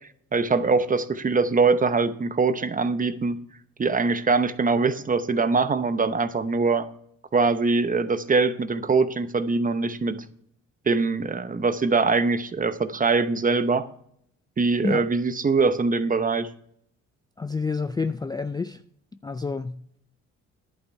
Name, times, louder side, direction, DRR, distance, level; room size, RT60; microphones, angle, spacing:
voice 1, 0.3-3.4 3.8-6.8 7.3-10.2 10.9-13.9 14.6-16.5, right 4 dB, 25° right, 0.8 m, -23 dB
voice 2, 17.4-18.8 19.2-20.0, left 4 dB, 15° left, 0.3 m, -29 dB
11.0 x 8.6 x 4.6 m
cardioid pair, 90°, 30 cm